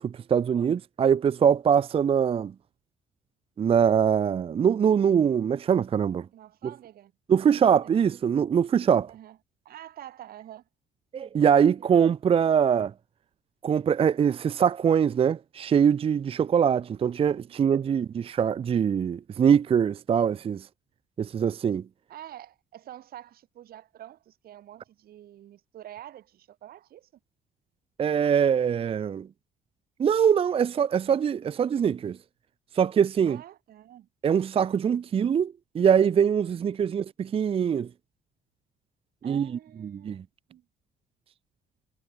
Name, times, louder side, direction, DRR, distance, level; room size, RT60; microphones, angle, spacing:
voice 1, 0.0-2.5 3.6-6.3 7.3-9.1 11.1-12.9 13.6-20.7 21.2-21.8 28.0-29.3 30.0-32.2 32.7-33.4 34.2-37.9 39.2-39.5 39.9-40.2, right 7 dB, 35° right, 0.6 m, -23 dB
voice 2, 6.3-7.9 9.1-9.4 9.7-10.7 22.1-27.1 33.3-34.1 36.6-37.0 39.2-40.2 40.5-40.7, right 12 dB, 65° right, 3.5 m, -47 dB
cardioid pair, 110°, 17 cm